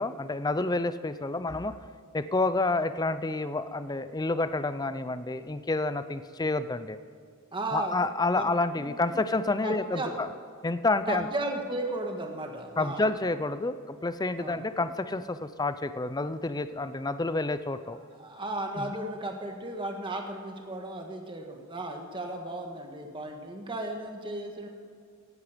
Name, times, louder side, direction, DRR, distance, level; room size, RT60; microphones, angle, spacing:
voice 1, 0.0-1.8 2.1-7.0 7.7-10.3 10.6-11.3 12.8-18.0 18.8-19.0, left 2 dB, 20° left, 12 dB, 0.5 m, -29 dB
voice 2, 7.5-8.0 8.3-8.4 8.8-9.2 9.6-10.2 11.1-13.1 14.4-14.6 17.9-24.7, right 1 dB, 20° right, 2 dB, 1.7 m, -35 dB
16.5 x 11.0 x 5.1 m, 2.3 s
head